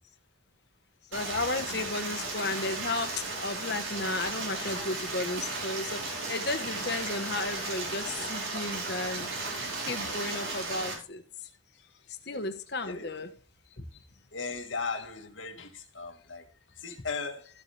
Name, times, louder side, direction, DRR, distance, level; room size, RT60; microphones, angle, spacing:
voice 1, 1.1-9.3 9.8-11.2 12.2-13.3 13.8-13.9, left 2 dB, 55° left, 1.3 m, -34 dB
Stream, 1.1-10.9, right 3 dB, 85° right, 4.7 m, -35 dB
voice 2, 12.8-13.1 14.3-16.4 16.8-17.5, left 4 dB, 75° left, 1.5 m, -37 dB
14.0 x 8.5 x 3.4 m
head